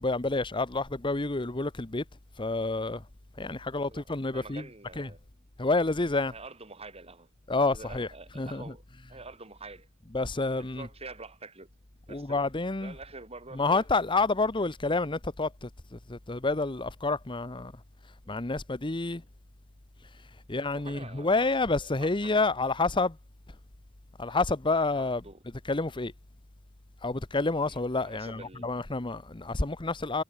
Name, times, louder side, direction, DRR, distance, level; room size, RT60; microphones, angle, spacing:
voice 1, 0.0-2.0 2.4-3.0 3.4-4.6 5.0-5.1 5.6-6.3 7.5-8.1 8.4-8.7 10.1-10.9 12.1-12.9 13.5-17.7 18.3-19.2 20.5-23.2 24.2-25.2 25.7-26.1 27.0-30.2, left 3 dB, 25° left, 0.9 m, -29 dB
voice 2, 3.7-4.0 4.3-5.2 6.3-8.8 9.1-9.9 10.5-11.7 12.1-12.4 12.8-13.8 20.7-21.5 21.8-22.3 24.9-25.4 27.6-28.7, right 3 dB, 30° right, 3.7 m, -46 dB
head